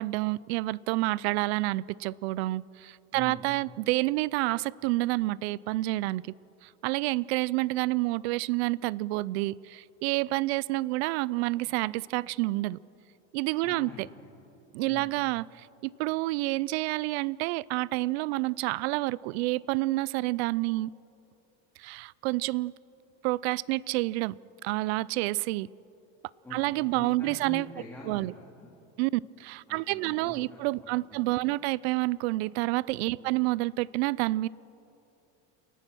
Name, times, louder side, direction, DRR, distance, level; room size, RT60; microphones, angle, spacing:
voice 1, 0.0-6.2 6.6-12.8 13.3-14.1 14.7-20.9 21.8-22.7 23.2-24.3 24.6-25.7 26.5-27.7 28.1-28.3 29.0-34.5, right 20 dB, 70° right, 23 dB, 0.5 m, -29 dB
voice 2, 3.1-3.5 13.6-14.6 14.9-15.2 26.4-28.7 29.7-31.6 33.1-33.4, left 2 dB, 5° left, -4 dB, 2.2 m, -46 dB
29.5 x 14.5 x 6.2 m, 2.9 s
cardioid pair, 170°, 33 cm